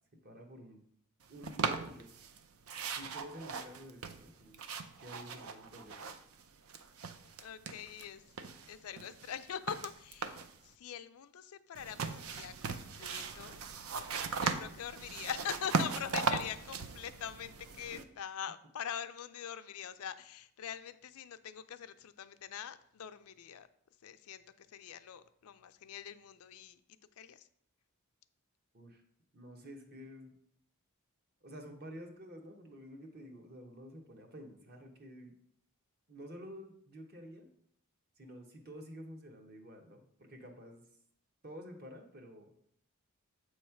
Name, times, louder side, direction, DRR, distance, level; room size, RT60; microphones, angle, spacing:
voice 1, 0.2-0.8 1.3-2.1 2.9-4.6 5.0-6.0 17.9-18.0 28.7-29.0 29.3-30.3 31.4-35.3 36.1-37.5 38.2-40.8 41.4-42.5, equal, 45° right, 3 dB, 1.0 m, -50 dB
sound 1, 1.4-2.4 2.7-6.4 6.7-8.1 8.4-10.6 11.7-18.0, right 5 dB, 70° right, 0.5 m, -38 dB
voice 2, 7.4-8.3 8.7-13.6 13.9-14.1 14.4-23.7 24.0-26.8 27.2-27.5, left 9 dB, 75° left, 11 dB, 0.4 m, -43 dB
7.6 x 3.2 x 5.7 m, 0.68 s
head